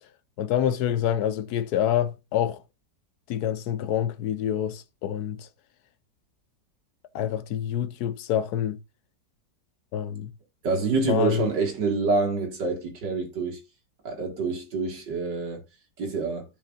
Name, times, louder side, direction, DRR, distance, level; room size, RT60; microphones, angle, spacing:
voice 1, 0.4-2.6 3.3-5.5 7.1-8.8 9.9-10.3 11.1-11.5, left 10 dB, 70° left, 1.0 m, -27 dB
voice 2, 10.6-13.6 14.0-15.6 16.0-16.4, right 4 dB, 80° right, 2.5 m, -26 dB
13.5 x 5.1 x 2.4 m
omnidirectional pair, 1.9 m